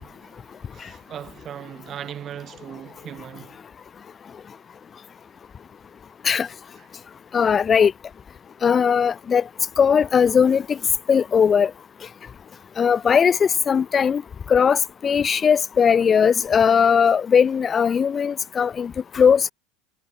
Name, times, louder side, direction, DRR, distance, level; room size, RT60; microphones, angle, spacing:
voice 1, 0.0-3.6 6.8-6.9, right 10 dB, 40° right, 4.5 m, -39 dB
voice 2, 7.3-7.9 8.6-9.4 9.8-10.8 11.1-11.7 12.8-14.2 14.5-19.5, left 7 dB, 30° left, 0.7 m, -18 dB
hypercardioid pair, 90°, 0 cm